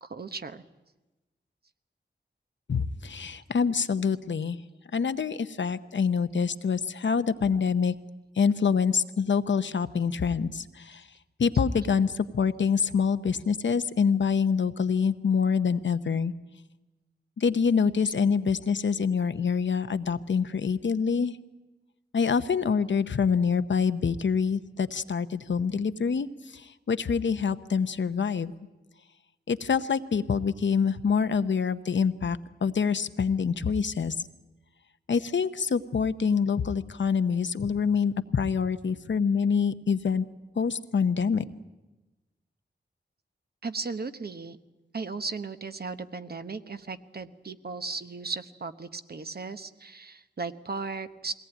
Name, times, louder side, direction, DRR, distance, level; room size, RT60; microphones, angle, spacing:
voice 1, 0.0-0.6 7.5-7.6 43.6-44.6 44.9-51.3, right 4 dB, 55° right, 9 dB, 1.0 m, -36 dB
voice 2, 2.7-4.6 4.9-7.9 8.4-11.0 11.4-16.3 17.4-21.4 22.1-28.5 29.5-34.1 35.1-40.2 40.6-41.4, left 6 dB, 80° left, 11 dB, 0.8 m, -26 dB
22.0 x 18.0 x 9.1 m, 1.1 s
wide cardioid pair, 85°, 19 cm